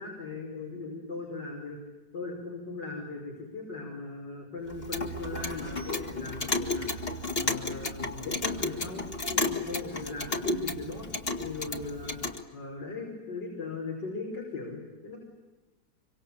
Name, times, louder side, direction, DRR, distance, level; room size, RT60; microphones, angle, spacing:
voice 1, 0.0-1.8 2.1-11.1 11.4-12.2 12.5-15.2, left 3 dB, 70° left, -1 dB, 6.2 m, -38 dB
Clock, 4.7-12.4, left 2 dB, 30° left, 2.2 m, -33 dB
26.0 x 25.0 x 8.6 m, 1.2 s
omnidirectional pair, 2.0 m